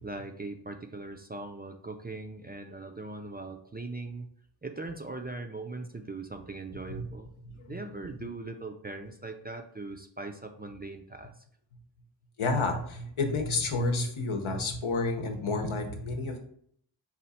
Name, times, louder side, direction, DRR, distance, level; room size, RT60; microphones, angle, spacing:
voice 1, 0.0-4.3 4.6-7.3 7.7-11.4, right 3 dB, 20° right, 5 dB, 0.4 m, -40 dB
voice 2, 7.4-7.8 8.2-8.3 12.4-16.4, left 3 dB, 75° left, 4 dB, 0.9 m, -30 dB
4.3 x 2.4 x 4.1 m, 0.65 s
wide cardioid pair, 50°, 49 cm